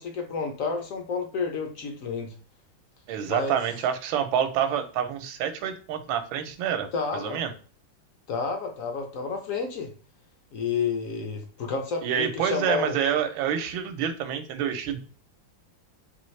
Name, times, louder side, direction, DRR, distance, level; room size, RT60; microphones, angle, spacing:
voice 1, 0.0-2.3 3.3-3.6 6.9-7.4 8.3-9.9 10.5-13.0, left 5 dB, 70° left, 4 dB, 0.8 m, -30 dB
voice 2, 3.1-7.5 12.0-15.0, right 9 dB, 80° right, 9 dB, 1.4 m, -27 dB
4.3 x 3.1 x 3.1 m, 0.37 s
omnidirectional pair, 2.2 m